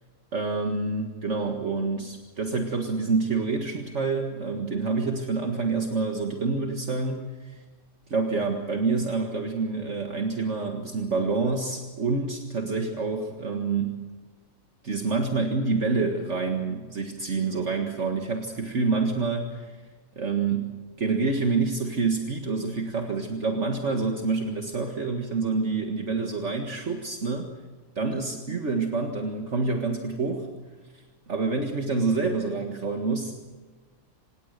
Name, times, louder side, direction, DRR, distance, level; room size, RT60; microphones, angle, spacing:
voice 1, 0.3-7.6 8.1-14.0 14.8-19.8 20.2-20.7 21.0-27.5 28.0-30.5 30.9-33.4, right 4 dB, 55° right, 3 dB, 2.0 m, -27 dB
28.0 x 17.5 x 6.7 m, 1.3 s
omnidirectional pair, 1.4 m